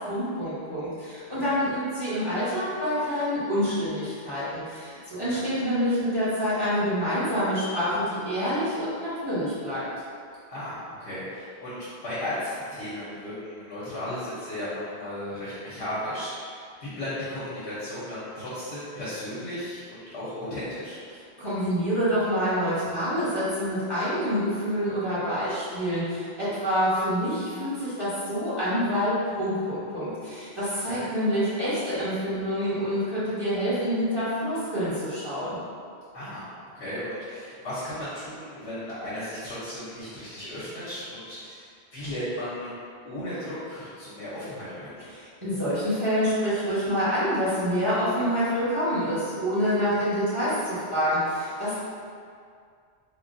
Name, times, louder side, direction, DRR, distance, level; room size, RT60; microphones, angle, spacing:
voice 1, 0.0-9.8 21.4-35.6 45.1-51.8, equal, 25° right, -13 dB, 0.9 m, -27 dB
voice 2, 10.5-21.0 30.8-31.0 36.1-36.5 36.7-42.7 43.0-45.0 49.9-50.0, left 1 dB, 80° left, -11 dB, 1.0 m, -35 dB
3.5 x 2.1 x 2.5 m, 2.2 s
omnidirectional pair, 1.1 m